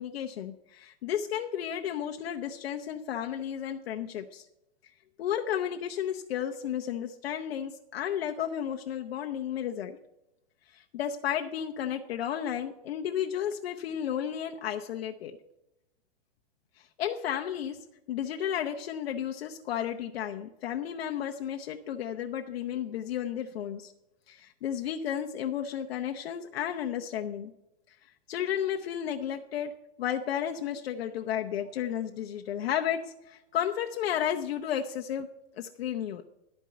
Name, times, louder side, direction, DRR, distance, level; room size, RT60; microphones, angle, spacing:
voice 1, 0.0-4.5 5.2-10.0 10.7-15.4 16.8-23.9 24.3-27.5 27.9-28.0 28.3-35.3 35.5-36.2, left 9 dB, 70° left, 3 dB, 0.8 m, -33 dB
12.5 x 4.5 x 8.4 m, 0.90 s
hypercardioid pair, 145°, 32 cm